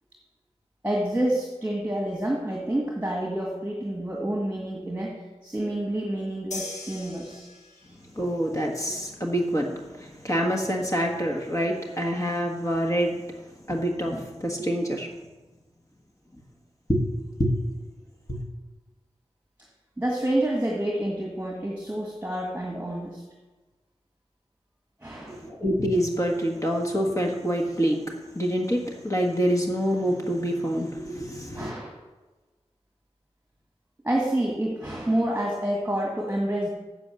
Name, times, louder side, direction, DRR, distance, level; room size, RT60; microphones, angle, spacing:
voice 1, 0.8-7.5 20.0-23.2 25.0-25.4 31.5-32.0 34.0-36.7, right 1 dB, 15° right, -2 dB, 1.9 m, -28 dB
sound 1, 6.5-8.1, left 3 dB, 85° left, 1.4 m, -39 dB
voice 2, 8.2-13.2 13.7-15.1 16.9-17.0 17.4-17.5 18.3-18.4 25.3-28.0 28.3-31.7, equal, 25° left, 0 dB, 1.4 m, -26 dB
7.7 x 6.9 x 6.9 m, 1.2 s
wide cardioid pair, 55°, 12 cm